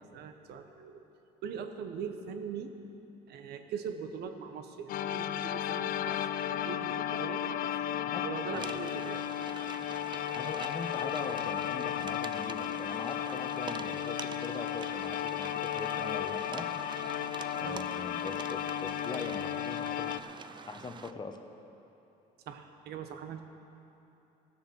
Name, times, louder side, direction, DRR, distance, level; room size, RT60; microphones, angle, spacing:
voice 1, 0.1-1.0 1.4-2.8 3.3-7.8 8.2-9.3 17.6-17.8 22.5-23.4, right 6 dB, 75° right, 7 dB, 1.0 m, -41 dB
sound 1, 4.9-20.2, left 11 dB, 55° left, 0.4 m, -34 dB
sound 2, 8.5-21.1, right 6 dB, 25° right, 0.4 m, -46 dB
voice 2, 10.3-16.7 17.6-20.2 20.6-21.4, left 3 dB, 25° left, 5 dB, 1.0 m, -41 dB
16.0 x 7.4 x 6.3 m, 2.9 s
cardioid pair, 110°, 17 cm